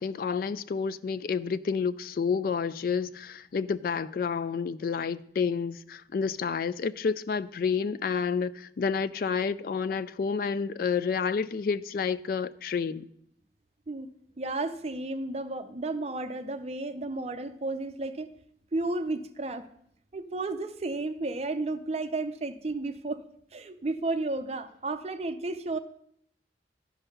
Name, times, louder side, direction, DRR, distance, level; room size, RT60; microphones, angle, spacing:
voice 1, 0.0-13.1, left 5 dB, 55° left, 0.3 m, -29 dB
voice 2, 14.4-18.3 18.7-19.7 20.1-23.2 23.5-25.8, right 2 dB, 35° right, 0.6 m, -32 dB
12.0 x 5.4 x 5.6 m
head